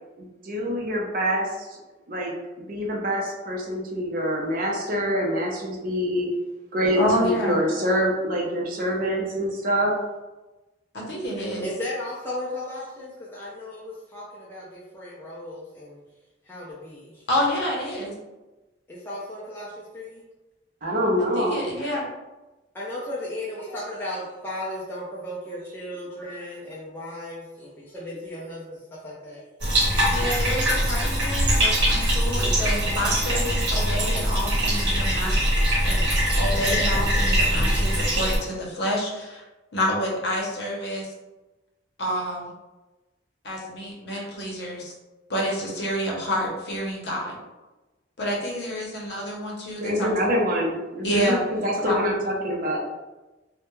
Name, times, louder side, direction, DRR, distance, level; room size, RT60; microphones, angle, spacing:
voice 1, 0.2-1.8 2.1-6.3 6.7-9.9 20.8-21.6 49.8-52.8, equal, 50° right, -2 dB, 0.5 m, -25 dB
voice 2, 7.0-7.6 10.9-11.7 17.3-18.1 21.4-22.0 30.1-35.4 35.8-36.0 36.4-39.4 39.7-41.1 42.0-42.5 43.4-44.9 45.3-47.4 48.2-50.1 51.0-51.4 51.8-52.0, equal, 60° left, -3 dB, 0.7 m, -28 dB
voice 3, 11.6-16.0 16.5-17.2 18.9-20.2 22.7-28.8 29.0-29.5, left 1 dB, 10° left, -7 dB, 0.3 m, -35 dB
Bathtub (filling or washing), 29.6-38.4, equal, 65° right, 0.9 m, -22 dB
2.2 x 2.1 x 3.0 m, 1.1 s
head